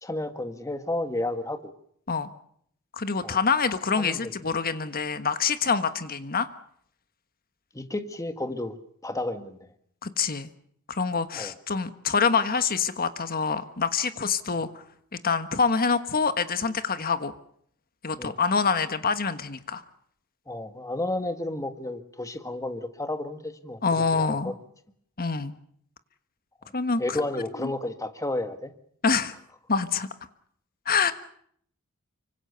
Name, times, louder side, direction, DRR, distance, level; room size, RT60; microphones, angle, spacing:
voice 1, 0.0-1.7 3.2-3.4 4.0-4.3 7.7-8.8 9.0-9.7 11.3-11.5 18.2-18.4 20.5-23.8 24.1-24.5 26.6-26.7 27.0-28.7, left 2 dB, 15° left, 8 dB, 1.7 m, -32 dB
voice 2, 3.0-6.5 10.0-10.5 10.9-14.7 15.1-17.3 18.0-19.8 23.8-24.5 25.2-25.5 26.7-27.2 27.6-27.7 29.0-29.3 29.7-30.1 30.9-31.1, left 5 dB, 45° left, 11 dB, 1.4 m, -26 dB
25.0 x 24.5 x 6.9 m, 0.66 s
head